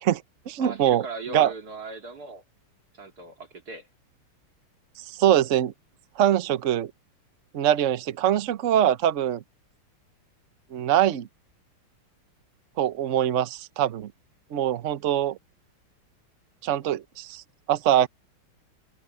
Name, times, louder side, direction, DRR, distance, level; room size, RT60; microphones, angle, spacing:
voice 1, 0.0-1.0 1.3-1.5 5.1-5.7 6.2-6.9 7.5-9.4 10.7-11.3 12.8-14.1 14.5-15.4 16.6-17.4 17.7-18.1, right 11 dB, 75° right, 0.7 m, -23 dB
voice 2, 0.6-2.4 2.9-3.9, right 4 dB, 45° right, 3.1 m, -39 dB
open air
omnidirectional pair, 2.3 m